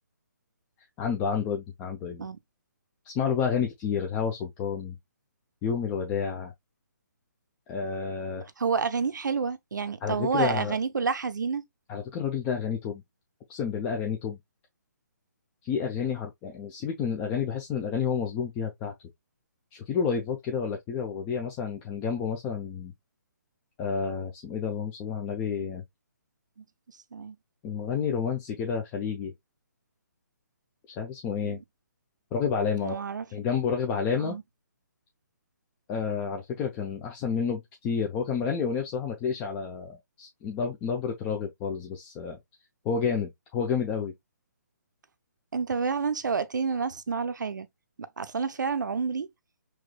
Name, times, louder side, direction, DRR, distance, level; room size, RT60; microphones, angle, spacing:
voice 1, 1.0-2.2 3.1-5.0 5.6-6.5 7.7-8.5 10.0-10.7 11.9-13.0 13.5-14.4 15.6-18.9 19.7-22.9 23.8-25.8 27.6-29.3 31.0-31.6 32.3-33.0 33.3-34.4 35.9-42.4 42.8-44.1, left 6 dB, 20° left, 0.5 m, -30 dB
voice 2, 8.6-11.6 27.1-27.4 31.4-31.6 32.8-33.2 34.2-34.4 45.5-47.7 48.0-49.3, right 5 dB, 80° right, 0.5 m, -29 dB
4.7 x 3.0 x 2.2 m
hypercardioid pair, 145°, 10 cm